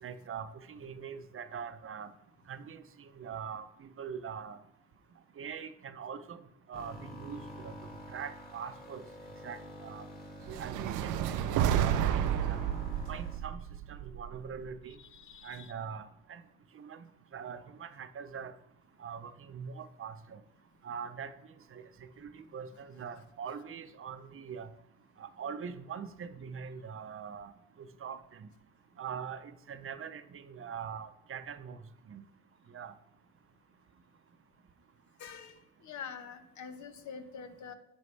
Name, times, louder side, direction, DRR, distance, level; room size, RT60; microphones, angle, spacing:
voice 1, 0.0-2.1 2.5-4.6 5.4-6.4 6.7-9.0 9.4-10.1 10.5-12.6 13.1-13.6 13.9-15.0 15.4-16.4 16.7-17.0 17.3-18.5 19.0-20.4 20.8-21.3 21.7-24.7 25.2-27.5 27.8-28.5 29.0-31.8 32.1-32.2 32.7-32.9, right 7 dB, 45° right, 12 dB, 0.7 m, -43 dB
sound 1, 6.7-13.4, equal, 30° left, 2.3 m, -47 dB
sound 2, 10.5-14.7, right 10 dB, 85° right, 0.5 m, -31 dB
voice 2, 15.3-15.7 35.2-35.5 35.8-37.7, left 6 dB, 70° left, 8 dB, 1.1 m, -45 dB
9.5 x 6.2 x 3.3 m, 0.84 s
cardioid pair, 90°, 30 cm